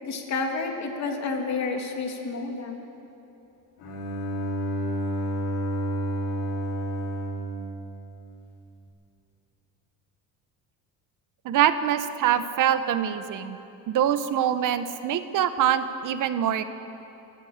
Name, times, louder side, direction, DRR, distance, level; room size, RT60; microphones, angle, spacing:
voice 1, 0.0-2.8, left 4 dB, 50° left, 2 dB, 3.0 m, -30 dB
Bowed string instrument, 3.8-8.6, right 1 dB, 85° left, 6.5 m, -30 dB
voice 2, 11.4-13.6 13.9-16.6, right 10 dB, 60° right, 11 dB, 1.2 m, -24 dB
29.0 x 15.5 x 6.7 m, 2.9 s
cardioid pair, 130°, 35 cm